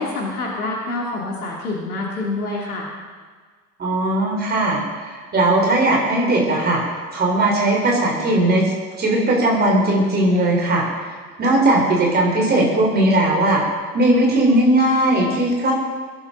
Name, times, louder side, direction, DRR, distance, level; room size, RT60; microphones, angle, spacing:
voice 1, 0.0-2.9, left 2 dB, 60° left, -2 dB, 2.7 m, -26 dB
voice 2, 3.8-6.8 7.1-8.6 9.0-11.1 11.4-13.6 13.9-15.7, right 1 dB, 20° right, -2 dB, 4.0 m, -18 dB
23.5 x 11.0 x 3.9 m, 1.5 s
figure-of-eight pair, 85°, 49 cm